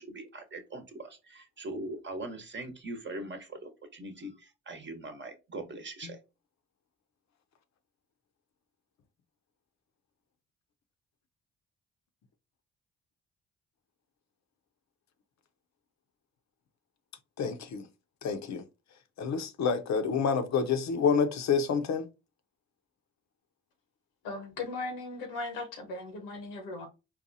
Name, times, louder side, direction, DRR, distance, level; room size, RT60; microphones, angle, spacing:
voice 1, 0.0-6.2, right 2 dB, 35° right, 0.9 m, -41 dB
voice 2, 17.4-17.9 18.2-18.6 19.2-22.1, left 6 dB, 60° left, 0.6 m, -28 dB
voice 3, 24.2-26.9, left 3 dB, 90° left, 0.9 m, -38 dB
4.1 x 2.2 x 2.6 m
supercardioid pair, 50°, 32 cm